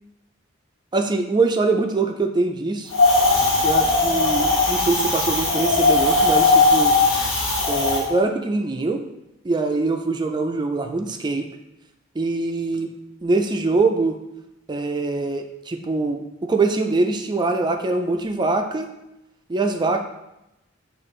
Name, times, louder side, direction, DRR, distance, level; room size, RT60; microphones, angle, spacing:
voice 1, 0.9-2.9 3.6-6.9 7.7-9.0 9.4-11.5 12.2-12.9 13.2-14.2 14.7-18.9 19.5-20.0, right 3 dB, 25° right, 5 dB, 0.4 m, -23 dB
Wind, 2.9-8.0, left 3 dB, 70° left, 1.0 m, -18 dB
6.6 x 2.5 x 3.1 m, 0.89 s
head